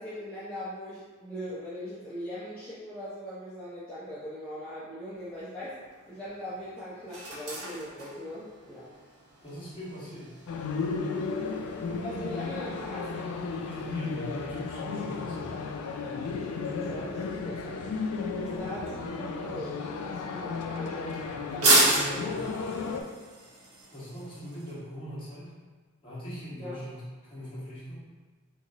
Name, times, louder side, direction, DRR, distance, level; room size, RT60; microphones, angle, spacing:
voice 1, 0.0-5.8 6.1-8.9 11.7-13.2 16.1-21.2 21.5-22.3 26.6-26.8, equal, 5° left, -12 dB, 0.6 m, -40 dB
sound 1, 5.1-24.7, right 2 dB, 85° right, 0.9 m, -34 dB
voice 2, 9.4-10.3 13.6-15.5 21.9-22.4 23.9-25.5 26.0-28.0, equal, 25° left, -10 dB, 1.3 m, -41 dB
sound 2, 10.5-23.0, left 4 dB, 85° left, 0.3 m, -34 dB
3.5 x 3.0 x 2.8 m, 1.5 s
head